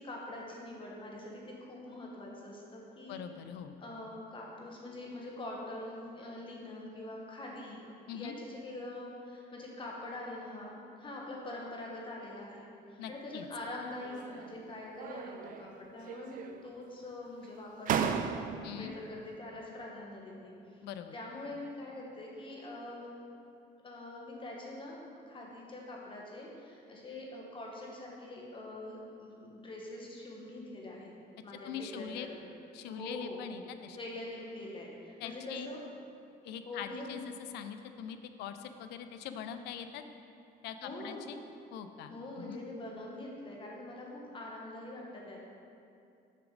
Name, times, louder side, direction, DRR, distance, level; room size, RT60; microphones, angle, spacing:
voice 1, 0.0-3.2 3.8-7.8 8.1-20.5 21.1-23.1 23.8-25.0 25.2-31.1 31.4-32.4 32.9-33.4 34.0-35.8 36.6-37.2 40.8-41.3 42.1-45.5, left 1 dB, 30° left, -2 dB, 1.3 m, -44 dB
voice 2, 3.1-3.8 8.1-8.3 13.0-13.5 18.6-18.9 20.8-21.1 31.6-32.3 32.7-34.0 35.2-35.7 36.4-40.0 40.6-41.4 41.7-42.6, left 8 dB, 80° left, 9 dB, 0.5 m, -43 dB
sound 1, 14.0-14.6 15.0-15.7 16.0-16.8 17.4-17.5 17.9-18.8, right 7 dB, 55° right, 0.4 m, -35 dB
6.5 x 6.0 x 3.9 m, 2.6 s
cardioid pair, 110°, 17 cm